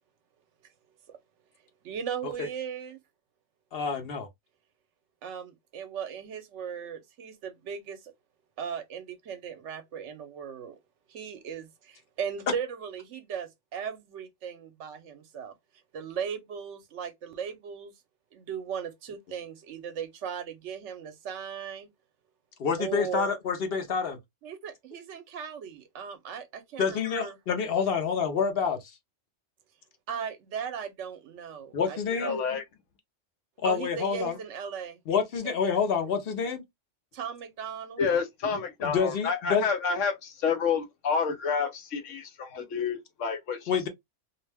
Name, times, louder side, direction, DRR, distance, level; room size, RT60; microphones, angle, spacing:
voice 1, 1.8-3.0 5.2-8.1 8.6-10.8 11.1-15.5 15.9-17.9 18.3-21.9 22.8-23.3 24.4-27.4 30.1-32.4 33.6-35.0 35.4-35.5 37.1-38.0, right 7 dB, 75° right, 0.9 m, -37 dB
voice 2, 3.7-4.3 22.6-24.2 26.8-28.9 31.7-32.4 33.6-34.4 35.1-36.6 38.8-39.7 43.7-43.9, left 6 dB, 55° left, 0.8 m, -28 dB
voice 3, 32.2-32.6 38.0-43.9, left 6 dB, 80° left, 1.1 m, -29 dB
2.6 x 2.1 x 3.3 m
omnidirectional pair, 1.3 m